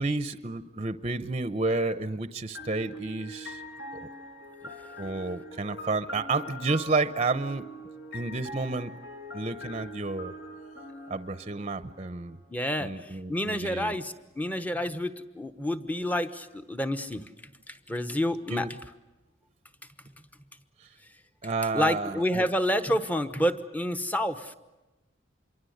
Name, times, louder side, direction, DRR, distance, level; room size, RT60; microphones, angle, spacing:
voice 1, 0.0-3.6 3.9-4.1 4.6-4.7 5.0-7.7 8.1-9.0 9.3-10.3 11.1-12.4 12.8-14.0 18.5-18.7 21.4-22.4, right 3 dB, 30° right, 13 dB, 0.8 m, -31 dB
sound 1, 2.5-12.3, equal, 65° left, 5.2 m, -43 dB
voice 2, 12.5-17.2 17.7-18.7 21.7-24.6, equal, 10° left, 10 dB, 1.1 m, -29 dB
26.5 x 23.5 x 8.0 m, 1.1 s
head